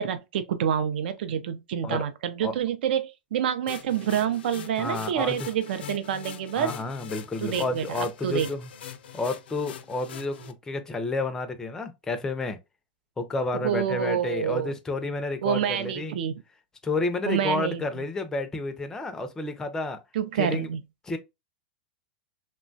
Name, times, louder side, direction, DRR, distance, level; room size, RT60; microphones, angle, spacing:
voice 1, 0.0-6.7 7.4-8.5 13.6-14.7 15.4-16.4 17.3-17.8 20.1-20.8, right 9 dB, 70° right, 0.5 m, -27 dB
sound 1, 3.7-10.5, left 9 dB, 85° left, 0.5 m, -43 dB
voice 2, 4.8-5.5 6.6-8.7 9.1-12.6 13.2-16.2 16.8-20.0 20.4-20.7 21.0-21.2, left 2 dB, 10° left, 0.4 m, -30 dB
3.0 x 2.2 x 2.5 m
supercardioid pair, 140°, 6 cm